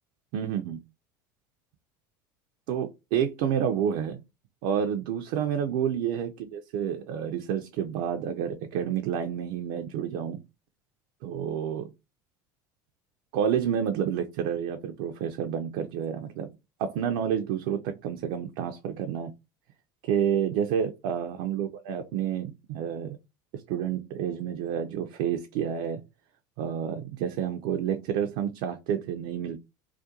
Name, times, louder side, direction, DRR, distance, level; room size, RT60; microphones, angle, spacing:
voice 1, 0.3-0.8 2.7-4.2 4.6-10.4 11.2-11.9 13.3-16.5 16.8-19.3 20.0-23.2 23.5-26.0 26.6-29.6, right 8 dB, 65° right, 0.4 m, -29 dB
2.3 x 2.1 x 2.8 m
hypercardioid pair, 85°, 11 cm